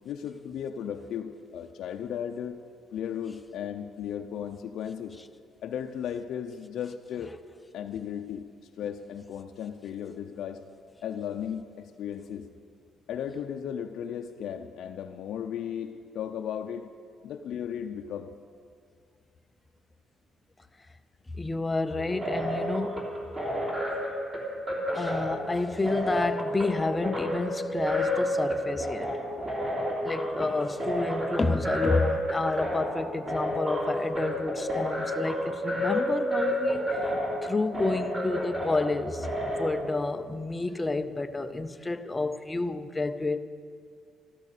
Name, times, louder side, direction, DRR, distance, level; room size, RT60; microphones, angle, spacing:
voice 1, 0.0-2.6 2.9-5.2 5.6-7.4 7.7-8.4 8.8-10.6 11.0-12.5 13.1-16.9 17.2-18.3, left 9 dB, 65° left, 4 dB, 0.6 m, -35 dB
voice 2, 21.4-23.1 24.9-29.2 30.0-37.1 37.4-43.4, left 3 dB, 15° left, 10 dB, 0.5 m, -30 dB
sound 1, 22.0-39.7, equal, 25° right, 3.2 m, -30 dB
13.5 x 13.0 x 6.7 m, 2.2 s
cardioid pair, 155°, 0 cm